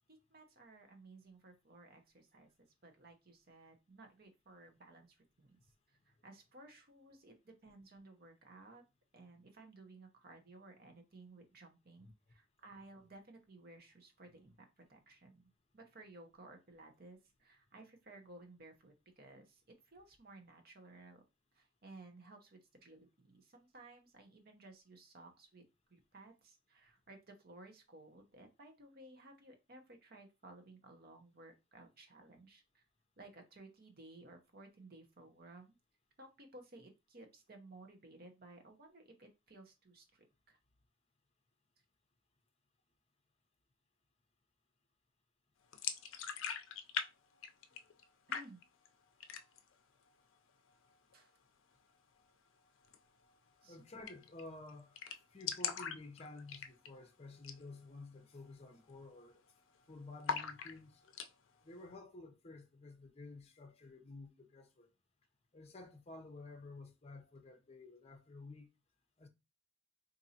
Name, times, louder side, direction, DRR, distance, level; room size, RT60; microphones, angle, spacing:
voice 1, 0.1-8.8 9.1-15.4 15.7-21.2 21.5-25.6 25.9-32.8 33.2-35.8 36.2-40.6 48.3-48.6 51.1-51.3 53.6-53.8, right 2 dB, 50° right, 0.8 m, -57 dB
sound 1, 45.7-47.1 47.3-48.0 48.3-48.9 49.2-49.7 50.1-50.2 50.5-51.1 52.8-53.0 53.3-53.4 53.6-53.7 54.1-54.4 54.7-54.8 55.0-57.0 57.4-57.6 58.0-58.1 58.6-58.9 59.2-59.8 60.2-61.3, left 7 dB, 85° left, 0.4 m, -41 dB
voice 2, 53.7-55.0 55.3-59.4 59.9-61.0 61.6-64.9 65.5-68.7 69.2-69.3, left 2 dB, 30° left, 0.6 m, -52 dB
4.0 x 2.6 x 2.8 m
head